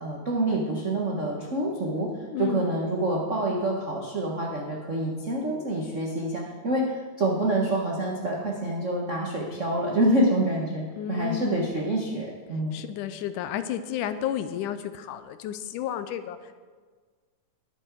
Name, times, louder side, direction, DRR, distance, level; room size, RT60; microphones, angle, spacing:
voice 1, 0.0-12.8, right 1 dB, 70° right, -2 dB, 0.7 m, -27 dB
voice 2, 2.3-2.7 11.0-11.6 12.7-16.5, left 10 dB, 85° left, 11 dB, 2.2 m, -32 dB
21.0 x 7.3 x 4.7 m, 1.5 s
omnidirectional pair, 3.6 m